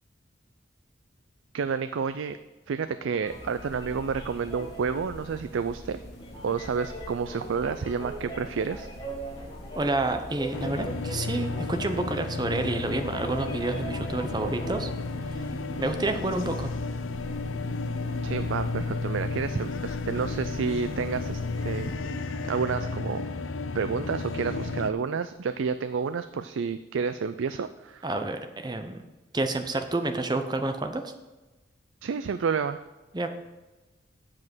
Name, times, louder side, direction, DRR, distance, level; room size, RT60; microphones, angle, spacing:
voice 1, 1.5-2.4 2.7-6.0 6.4-8.9 18.2-21.9 22.5-23.3 23.7-28.1 32.0-32.8, right 5 dB, 80° right, 11 dB, 0.4 m, -30 dB
sound 1, 2.8-14.9, right 2 dB, 25° left, 1.6 m, -42 dB
sound 2, 3.2-22.0, left 1 dB, 55° left, 2.3 m, -45 dB
voice 2, 9.8-14.9 15.3-15.5 15.8-16.7 28.0-29.0 29.3-31.1 33.1-33.3, right 2 dB, 20° right, 7 dB, 0.7 m, -29 dB
sound 3, 10.5-24.9, left 3 dB, 90° left, 0.6 m, -32 dB
7.6 x 7.5 x 6.1 m, 1.2 s
head